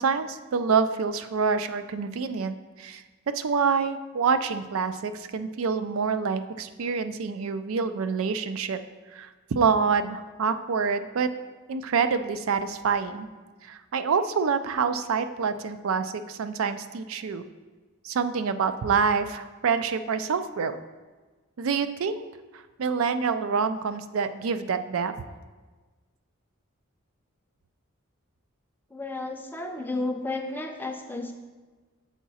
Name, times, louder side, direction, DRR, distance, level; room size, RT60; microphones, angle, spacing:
voice 1, 0.0-3.0 3.3-8.8 9.1-11.3 11.7-13.3 13.6-17.4 18.0-20.8 21.6-22.2 22.5-25.1 30.5-30.6, right 5 dB, 75° right, 11 dB, 0.4 m, -27 dB
voice 2, 28.9-31.3, left 2 dB, 10° left, 3 dB, 0.5 m, -32 dB
7.1 x 4.7 x 4.1 m, 1.3 s
head